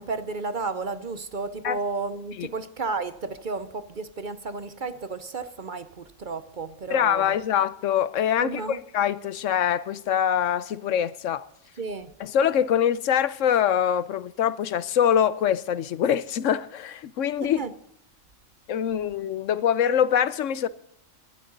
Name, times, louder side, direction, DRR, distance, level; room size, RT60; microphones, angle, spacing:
voice 1, 0.0-7.4 8.4-8.8 11.8-12.1 17.4-17.7, right 4 dB, 45° right, 0.8 m, -32 dB
voice 2, 6.9-11.5 12.2-17.6 18.7-20.7, left 9 dB, 75° left, 1.0 m, -24 dB
19.0 x 12.0 x 3.9 m
omnidirectional pair, 1.3 m